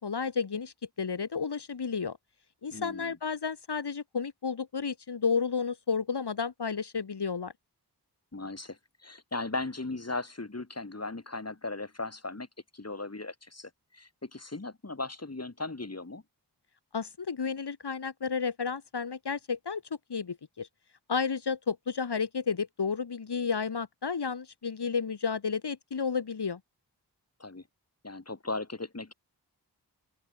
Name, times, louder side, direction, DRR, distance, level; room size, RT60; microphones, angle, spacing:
voice 1, 0.0-2.2 2.6-7.5 16.9-19.8 20.1-20.7 21.1-26.6, left 5 dB, 70° left, 3.9 m, -32 dB
voice 2, 2.7-3.2 8.3-12.5 12.7-16.2 27.4-27.6 28.0-29.1, left 3 dB, 35° left, 7.8 m, -37 dB
open air
cardioid pair, 50°, 41 cm